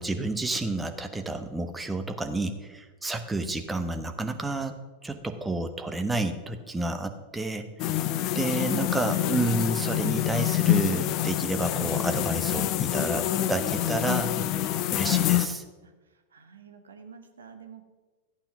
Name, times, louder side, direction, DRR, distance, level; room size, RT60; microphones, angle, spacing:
voice 1, 0.0-4.7 5.0-7.7 8.3-14.4 14.9-15.6, right 2 dB, 10° right, 7 dB, 1.2 m, -30 dB
sound 1, 7.8-15.5, left 13 dB, 40° left, 0.7 m, -26 dB
voice 2, 7.8-8.2 15.8-15.9 16.3-17.8, right 6 dB, 70° right, 7 dB, 1.5 m, -48 dB
14.0 x 8.9 x 6.1 m, 1.3 s
figure-of-eight pair, 90°, 0 cm